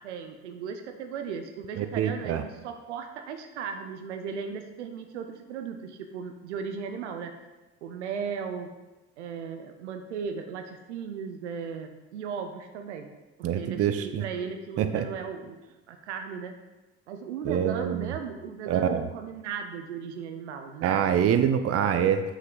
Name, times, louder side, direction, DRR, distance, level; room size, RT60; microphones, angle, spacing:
voice 1, 0.0-7.3 7.8-8.7 9.2-13.1 13.5-15.6 15.9-16.5 17.1-21.2, right 6 dB, 85° right, 6 dB, 0.6 m, -36 dB
voice 2, 1.8-2.4 13.4-14.2 14.8-15.0 17.4-18.1 18.7-19.1 20.8-22.2, right 9 dB, 45° right, 9 dB, 0.6 m, -25 dB
6.0 x 5.7 x 3.8 m, 1.1 s
hypercardioid pair, 60°, 34 cm